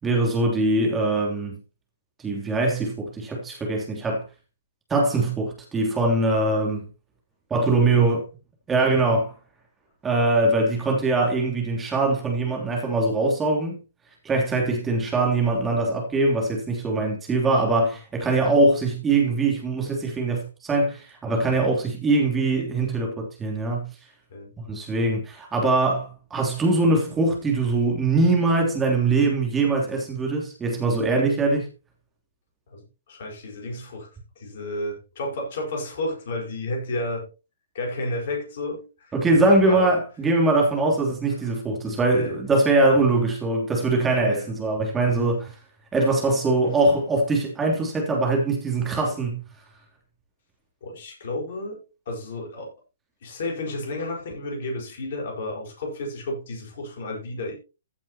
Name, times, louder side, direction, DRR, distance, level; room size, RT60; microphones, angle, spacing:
voice 1, 0.0-1.6 2.2-4.2 4.9-6.9 7.5-8.2 8.7-9.3 10.0-13.8 14.2-23.9 24.7-31.7 39.1-45.5 45.9-49.4, right 2 dB, 15° right, 3.2 m, -22 dB
voice 2, 32.7-34.1 34.4-37.3 37.7-39.9 42.1-42.3 44.2-44.5 46.6-46.7 49.0-49.1 50.8-51.8 52.1-52.7 53.2-57.5, left 1 dB, 55° left, 4.8 m, -32 dB
15.0 x 7.2 x 2.9 m
figure-of-eight pair, 120°, 0 cm